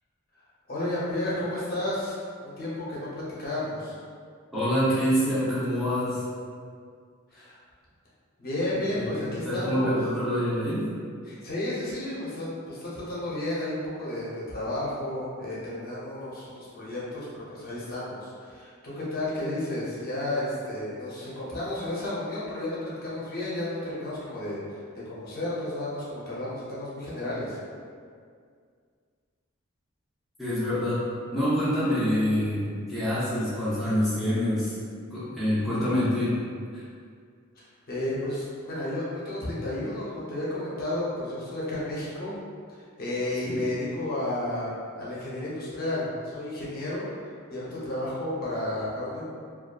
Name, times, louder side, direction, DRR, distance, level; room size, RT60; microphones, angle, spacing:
voice 1, 0.7-4.0 7.3-7.6 8.4-10.0 11.2-24.6 24.9-27.6 37.6-42.3 42.7-44.7 45.0-47.1 47.5-49.3, left 1 dB, 45° left, -8 dB, 0.6 m, -32 dB
voice 2, 4.5-6.2 9.0-9.1 9.4-10.8 30.4-31.0 31.3-34.8 35.1-36.4 36.7-36.8 43.4-43.6, equal, ahead, -13 dB, 0.6 m, -26 dB
2.6 x 2.3 x 2.2 m, 2.1 s
head